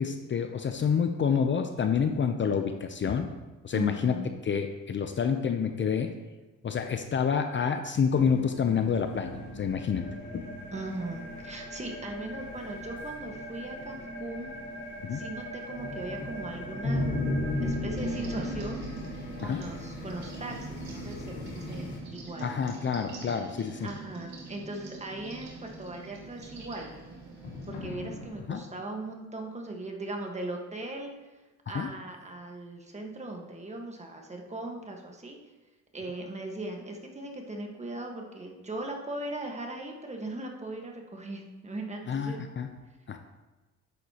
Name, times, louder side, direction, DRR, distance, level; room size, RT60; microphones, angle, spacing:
voice 1, 0.0-3.3 3.6-4.2 4.5-6.1 6.6-10.1 10.3-10.5 15.0-15.2 19.4-19.6 22.4-23.9 28.5-28.6 31.7-31.9 42.1-42.7 43.1-43.2, left 6 dB, 40° left, 7 dB, 0.6 m, -28 dB
voice 2, 3.7-4.3 10.7-14.5 15.1-17.1 17.6-18.9 19.4-22.5 23.8-26.9 27.7-31.3 31.7-35.4 35.9-42.4, right 2 dB, 20° right, 2 dB, 1.5 m, -39 dB
sound 1, 8.2-22.0, left 1 dB, 75° left, 2.4 m, -36 dB
sound 2, 12.1-28.6, left 2 dB, 55° left, 2.1 m, -51 dB
sound 3, 18.0-27.8, right 3 dB, 65° right, 2.5 m, -44 dB
10.5 x 7.9 x 2.9 m, 1.2 s
cardioid pair, 90°, 30 cm